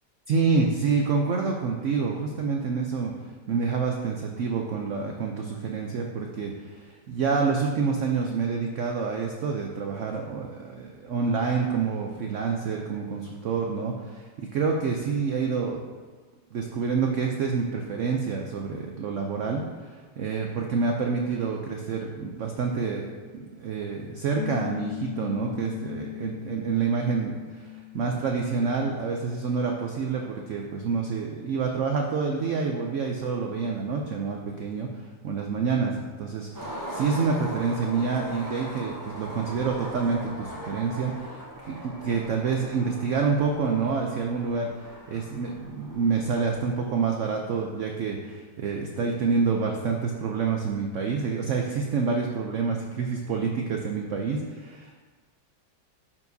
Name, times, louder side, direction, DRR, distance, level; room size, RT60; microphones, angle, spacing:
voice 1, 0.3-3.1 3.5-15.8 16.5-23.1 23.3-27.7 27.9-34.9 35.2-44.7 45.1-55.0, right 5 dB, 85° right, 1 dB, 0.6 m, -28 dB
Piano, 24.4-29.5, left 20 dB, 80° left, 1.3 m, -39 dB
Skateboard, 36.5-46.7, equal, 25° right, 0.4 m, -40 dB
11.0 x 4.6 x 2.7 m, 1.5 s
omnidirectional pair, 1.9 m